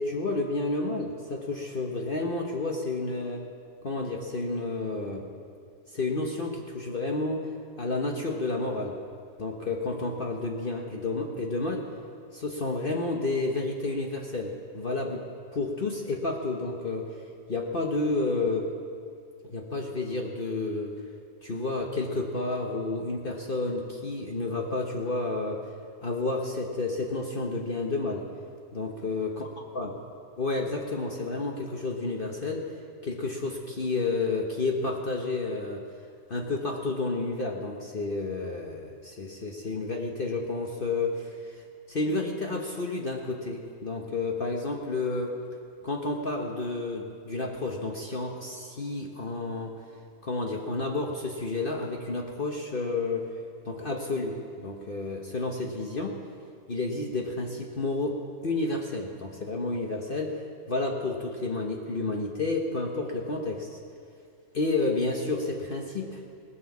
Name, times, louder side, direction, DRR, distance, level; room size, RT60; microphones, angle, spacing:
voice 1, 0.0-3.5 3.8-5.3 5.9-7.5 7.8-9.0 9.4-11.9 12.3-15.2 15.5-17.1 17.5-18.7 19.4-20.9 21.4-25.7 26.0-28.3 28.7-29.5 29.7-29.9 30.4-32.7 33.0-35.8 36.3-41.6 41.9-45.3 45.8-49.8 50.2-53.3 53.6-56.2 56.7-60.4 60.7-63.8 64.5-66.2, left 3 dB, 40° left, 1 dB, 1.1 m, -30 dB
18.0 x 9.9 x 7.1 m, 2.4 s
omnidirectional pair, 1.6 m